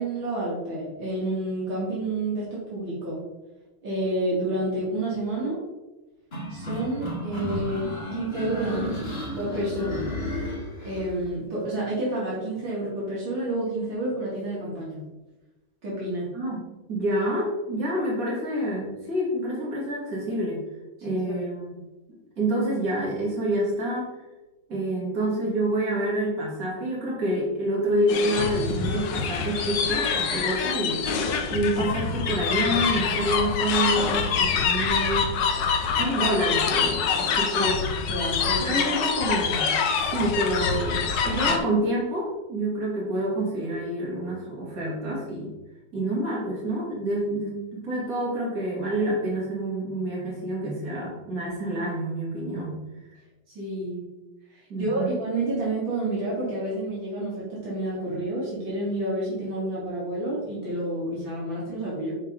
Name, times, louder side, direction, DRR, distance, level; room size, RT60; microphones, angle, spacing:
voice 1, 0.0-3.2 3.8-5.6 6.5-7.8 8.1-10.0 10.8-15.0 15.8-16.3 21.1-21.5 38.1-38.8 53.5-54.0 54.5-62.1, right 1 dB, 65° right, -7 dB, 3.1 m, -29 dB
sound 1, 6.3-11.1, equal, 30° left, 2.1 m, -32 dB
voice 2, 16.9-20.6 21.0-21.8 22.4-24.1 24.7-31.0 31.5-35.3 36.0-37.9 38.6-45.5 45.9-52.8 54.7-55.1, right 1 dB, 40° right, -6 dB, 3.2 m, -27 dB
sound 2, 28.1-41.6, left 6 dB, 65° left, 1.4 m, -25 dB
9.5 x 4.6 x 3.7 m, 1.1 s
omnidirectional pair, 2.3 m